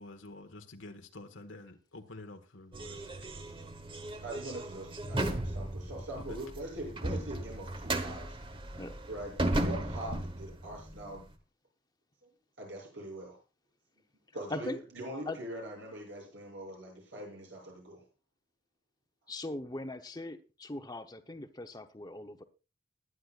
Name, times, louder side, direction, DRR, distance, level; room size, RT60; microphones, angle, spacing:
voice 1, 0.0-3.1 6.3-6.4, left 2 dB, 90° left, 5 dB, 1.5 m, -49 dB
sound 1, 2.7-11.3, right 1 dB, 25° right, 1.2 m, -36 dB
voice 2, 4.2-8.4 9.1-11.3 12.2-12.3 12.6-13.4 14.3-18.0, right 1 dB, 80° right, -1 dB, 7.4 m, -43 dB
voice 3, 14.5-14.8 15.3-15.4 19.3-22.4, left 2 dB, 20° left, 7 dB, 0.9 m, -40 dB
21.0 x 9.9 x 2.5 m, 0.32 s
head